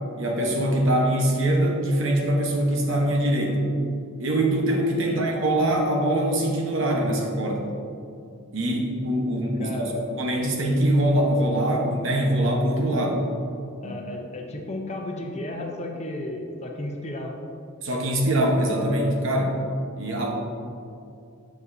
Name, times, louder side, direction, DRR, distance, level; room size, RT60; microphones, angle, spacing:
voice 1, 0.2-3.6 4.2-7.7 8.5-9.7 10.2-13.2 13.8-14.0 17.8-19.6 20.0-20.3, right 1 dB, 65° right, 0 dB, 1.1 m, -23 dB
voice 2, 9.6-10.1 13.8-17.4, left 1 dB, 30° left, 2 dB, 0.7 m, -33 dB
7.8 x 7.5 x 2.7 m, 2.6 s
head